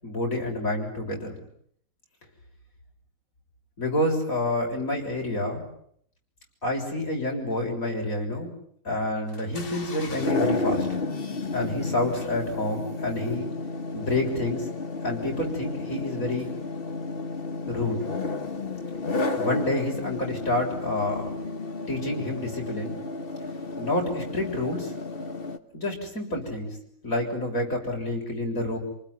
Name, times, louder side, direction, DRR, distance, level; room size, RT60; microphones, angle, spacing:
voice 1, 0.0-1.3 3.8-5.6 6.6-8.5 8.8-10.9 11.5-13.5 13.9-14.7 15.0-16.5 17.7-18.0 19.4-21.3 21.9-23.0 23.8-24.9 25.7-26.7 27.0-28.8, left 1 dB, 50° left, 1 dB, 7.2 m, -28 dB
sound 1, 9.3-25.6, left 3 dB, 35° left, 1.5 m, -32 dB
28.5 x 20.0 x 9.7 m, 0.67 s
omnidirectional pair, 1.8 m